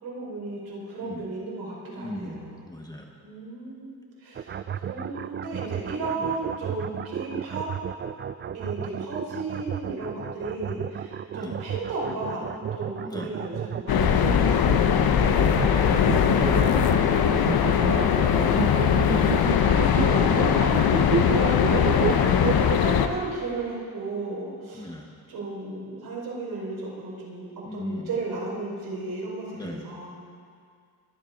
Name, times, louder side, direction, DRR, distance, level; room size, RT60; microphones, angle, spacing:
voice 1, 0.0-2.6 3.2-4.6 4.8-7.7 8.5-18.9 19.6-20.7 21.2-24.9 25.3-27.5 27.7-30.1, right 3 dB, 75° right, -4 dB, 5.2 m, -34 dB
voice 2, 2.0-3.1 6.2-6.4 11.3-11.6 13.0-13.3 19.0-19.9 24.7-25.1 27.6-28.2 29.5-29.8, left 1 dB, 10° left, 1 dB, 1.2 m, -38 dB
sound 1, 4.4-22.9, right 8 dB, 30° right, 0.4 m, -32 dB
sound 2, 13.9-23.1, left 8 dB, 75° left, 1.0 m, -21 dB
22.5 x 10.0 x 5.3 m, 2.2 s
wide cardioid pair, 150°, 37 cm